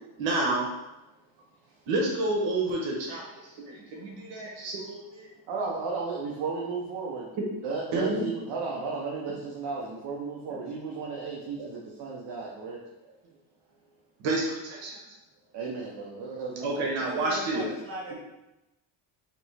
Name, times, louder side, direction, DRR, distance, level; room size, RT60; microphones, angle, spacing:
voice 1, 0.2-0.7 1.9-5.3 7.9-8.3 10.5-10.6 11.6-11.7 13.0-13.1 14.2-15.0 16.6-17.7, right 2 dB, 80° right, -1 dB, 1.2 m, -29 dB
voice 2, 5.5-7.3 7.6-12.8 14.9-15.0 15.5-16.9, right 4 dB, 60° right, -3 dB, 0.8 m, -34 dB
voice 3, 17.0-18.1, equal, 30° right, -5 dB, 1.4 m, -38 dB
3.6 x 3.0 x 4.1 m, 0.97 s
cardioid pair, 125°, 45 cm